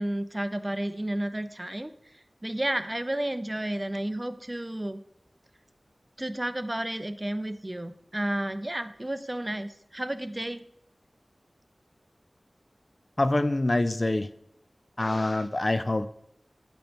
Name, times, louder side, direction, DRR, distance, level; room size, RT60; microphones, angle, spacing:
voice 1, 0.0-1.9 2.4-5.0 6.2-10.6, right 1 dB, 25° right, 12 dB, 0.4 m, -31 dB
voice 2, 13.2-14.3 15.0-16.1, left 2 dB, 45° left, 13 dB, 0.3 m, -25 dB
8.5 x 3.0 x 5.1 m, 0.77 s
wide cardioid pair, 45°, 0 cm